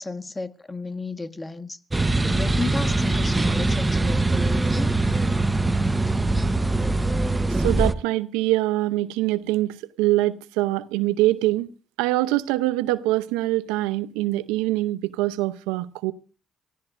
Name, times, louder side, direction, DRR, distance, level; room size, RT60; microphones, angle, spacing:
voice 1, 0.0-1.8 2.2-4.9, left 3 dB, 25° left, 1.5 m, -32 dB
sound 1, 1.9-7.9, right 2 dB, 20° right, 1.1 m, -22 dB
voice 2, 7.6-11.7 12.0-16.1, right 17 dB, 85° right, 0.7 m, -24 dB
26.0 x 16.0 x 2.6 m
hypercardioid pair, 50°, 0 cm